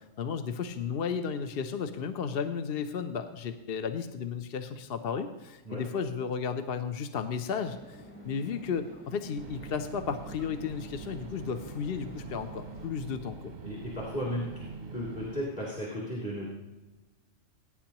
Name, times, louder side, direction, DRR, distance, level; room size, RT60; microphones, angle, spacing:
voice 1, 0.0-13.5, left 6 dB, 55° left, 8 dB, 0.8 m, -34 dB
sound 1, 7.6-12.9, right 1 dB, 10° left, 1.6 m, -50 dB
sound 2, 9.4-15.4, right 4 dB, 45° right, 0.7 m, -44 dB
voice 2, 13.6-16.5, equal, 30° left, -7 dB, 2.8 m, -35 dB
21.5 x 9.9 x 3.0 m, 1.1 s
omnidirectional pair, 1.3 m